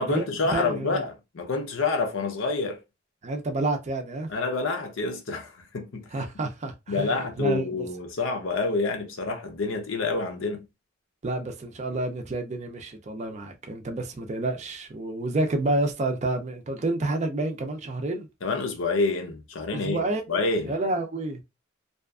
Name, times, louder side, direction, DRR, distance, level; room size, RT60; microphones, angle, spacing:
voice 1, 0.0-2.8 4.3-6.1 6.9-10.6 18.4-20.0 20.3-20.7, left 3 dB, 80° left, 0.6 m, -28 dB
voice 2, 0.5-1.1 3.2-4.3 6.1-7.9 11.2-18.3 19.7-21.4, right 2 dB, 35° right, 0.4 m, -29 dB
2.7 x 2.4 x 2.3 m
head